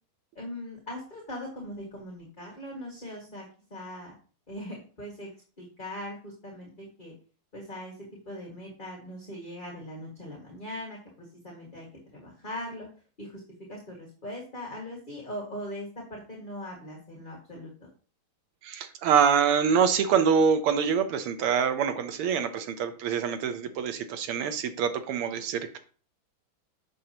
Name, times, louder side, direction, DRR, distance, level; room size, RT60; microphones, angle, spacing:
voice 1, 0.4-3.5 3.7-4.2 4.5-5.3 5.6-7.1 7.5-8.0 8.3-11.9 12.1-12.9 13.2-13.4 13.7-17.7, left 1 dB, 25° left, -3 dB, 1.8 m, -40 dB
voice 2, 18.6-25.8, right 7 dB, 80° right, 8 dB, 1.7 m, -25 dB
7.4 x 6.7 x 2.9 m, 0.40 s
omnidirectional pair, 2.4 m